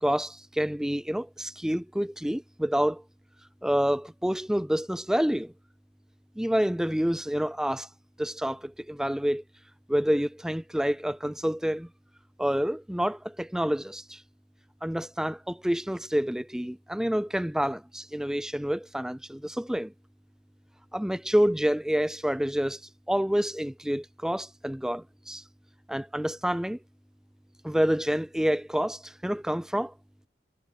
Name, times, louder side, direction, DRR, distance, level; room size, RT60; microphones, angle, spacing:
voice 1, 0.0-3.0 3.6-5.5 6.4-7.9 8.2-9.4 9.9-11.9 12.4-14.2 14.8-19.9 20.9-22.8 23.1-25.4 25.9-26.8 27.6-29.9, equal, 5° right, 0.4 m, -28 dB
head